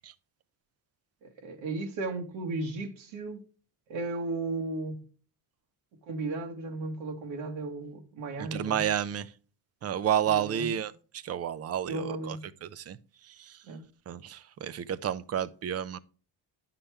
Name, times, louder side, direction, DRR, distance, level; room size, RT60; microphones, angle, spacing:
voice 1, 1.2-3.4 3.9-5.0 6.0-8.9 10.2-10.8 11.9-12.5 13.6-13.8, right 3 dB, 80° right, 1.7 m, -35 dB
voice 2, 8.4-9.3 9.8-12.4 12.6-13.0 13.3-13.6 14.1-16.0, right 9 dB, 35° right, 0.4 m, -31 dB
9.9 x 5.7 x 3.3 m
cardioid pair, 140°, 45 cm